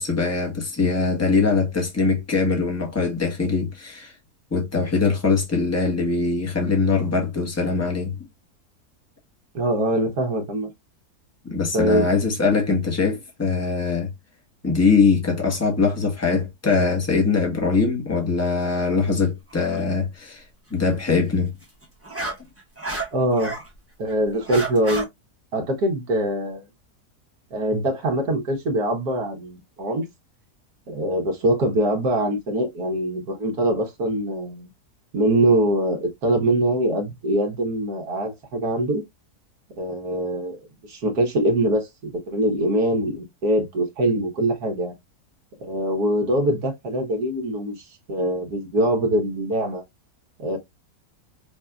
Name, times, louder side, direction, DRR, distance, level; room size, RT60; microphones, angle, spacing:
voice 1, 0.0-4.1 4.5-8.2 11.4-14.1 14.6-20.4 20.7-21.5, left 4 dB, 10° left, 1.1 m, -22 dB
voice 2, 9.5-10.7 11.7-12.1 23.1-23.6 24.0-25.1 25.5-26.6 27.5-30.1 30.9-34.7 35.1-39.0 39.8-40.6 40.9-44.9 45.6-49.8 50.4-50.6, right 1 dB, 75° right, 1.7 m, -23 dB
Dog Bark, 19.5-19.8 21.6-23.7 24.1-25.0, right 2 dB, 10° right, 1.1 m, -31 dB
5.3 x 2.6 x 2.3 m
omnidirectional pair, 1.6 m